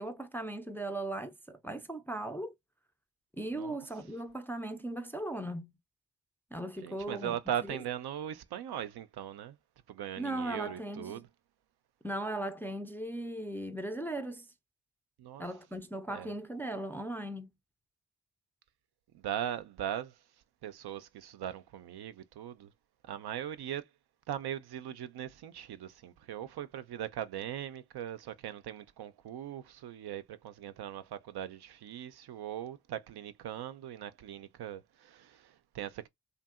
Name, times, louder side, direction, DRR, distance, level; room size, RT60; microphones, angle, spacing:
voice 1, 0.0-2.5 3.4-5.7 6.5-7.4 7.7-7.8 10.2-11.2 12.0-14.5 15.4-17.5, right 1 dB, 5° left, 0.4 m, -38 dB
voice 2, 6.8-9.6 9.9-11.3 15.2-15.4 16.1-16.3 19.1-20.2 20.6-22.7 23.0-23.9 24.3-36.1, right 10 dB, 65° right, 0.5 m, -40 dB
2.7 x 2.5 x 2.3 m
supercardioid pair, 45°, 42 cm